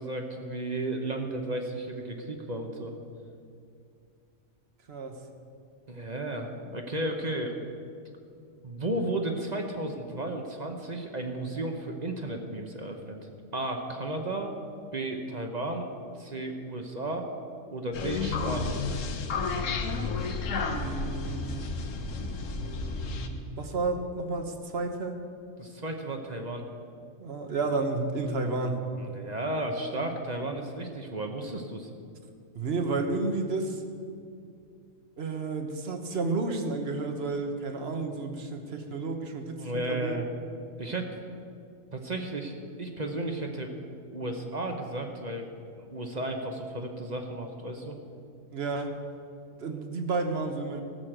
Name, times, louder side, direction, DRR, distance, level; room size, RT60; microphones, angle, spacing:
voice 1, 0.0-2.9 5.9-7.5 8.6-13.2 13.5-14.5 14.9-15.9 16.2-17.3 17.7-18.8 25.6-26.6 29.0-31.9 39.6-40.3 40.8-41.1 41.9-43.7 44.1-45.5 45.8-48.0, right 1 dB, 35° right, 3 dB, 0.9 m, -33 dB
voice 2, 4.9-5.2 20.7-21.8 22.5-25.1 27.2-28.8 32.5-33.8 35.2-40.2 48.5-48.9 49.6-50.8, right 3 dB, 55° right, 5 dB, 1.2 m, -31 dB
sound 1, 17.9-23.3, left 4 dB, 75° left, 1.3 m, -31 dB
14.0 x 6.4 x 7.7 m, 2.4 s
omnidirectional pair, 1.3 m